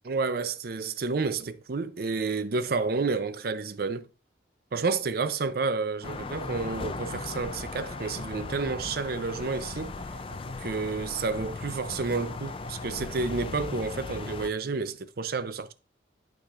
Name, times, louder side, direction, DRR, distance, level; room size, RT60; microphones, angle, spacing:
voice 1, 0.0-4.1 4.7-9.9 10.6-15.7, right 4 dB, 55° right, 0.5 m, -30 dB
sound 1, 6.0-14.5, left 3 dB, 30° left, 0.3 m, -37 dB
sound 2, 6.7-13.5, right 2 dB, 70° right, 1.6 m, -49 dB
11.5 x 5.0 x 2.4 m
head